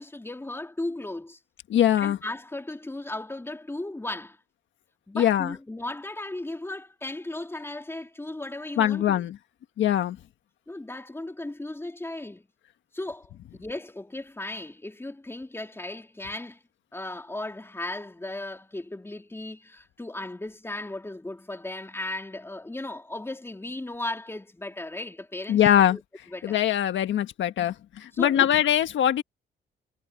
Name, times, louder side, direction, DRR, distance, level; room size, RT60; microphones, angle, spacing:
voice 1, 0.0-1.4 2.0-4.4 5.1-9.3 10.7-12.5 12.9-16.6 16.9-26.0 26.3-26.6 28.1-28.5, left 2 dB, 10° left, 3.4 m, -36 dB
voice 2, 1.7-2.2 5.1-5.6 8.8-9.4 9.8-10.2 25.5-26.0 26.4-29.2, left 11 dB, 70° left, 1.5 m, -22 dB
cardioid pair, 90°, 20 cm